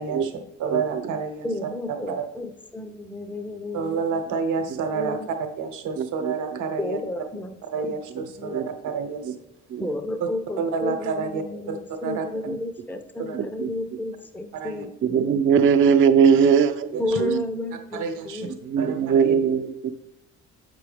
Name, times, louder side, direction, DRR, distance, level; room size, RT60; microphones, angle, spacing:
voice 1, 0.0-0.3 0.6-1.5 2.1-2.2 3.7-5.2 5.6-7.0 7.7-9.3 10.2-10.3 10.6-11.8 12.0-12.2 13.2-13.4 14.5-14.9 16.9-17.2 17.9-18.5 18.8-19.3, right 5 dB, 85° right, 6 dB, 1.0 m, -29 dB
voice 2, 0.7-1.0 4.7-4.8 6.0-6.3 8.5-8.7 9.2-9.3 9.7-9.9 12.5-12.6 13.3-13.7 15.0-17.4 18.4-19.9, right 7 dB, 45° right, 8 dB, 0.5 m, -21 dB
voice 3, 1.4-4.0 4.6-5.3 6.8-8.6 9.8-14.9 17.0-18.6, left 1 dB, 5° left, 8 dB, 0.5 m, -32 dB
7.4 x 5.9 x 3.4 m, 0.83 s
cardioid pair, 90°, 30 cm